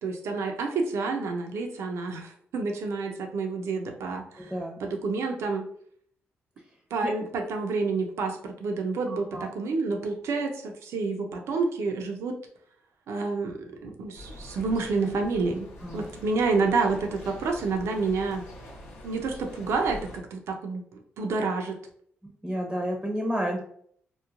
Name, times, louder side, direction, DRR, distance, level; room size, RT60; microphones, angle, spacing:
voice 1, 0.0-4.5 4.8-5.7 6.9-12.3 13.1-15.7 15.9-18.4 19.0-20.8 21.2-21.8, right 4 dB, 80° right, 3 dB, 0.5 m, -29 dB
voice 2, 4.4-4.9 7.0-7.1 9.1-9.5 15.8-16.0 22.4-23.6, equal, 10° right, 0 dB, 0.6 m, -31 dB
sound 1, 14.1-20.2, left 1 dB, 80° left, 0.8 m, -44 dB
3.0 x 2.1 x 2.4 m, 0.62 s
cardioid pair, 65°, 5 cm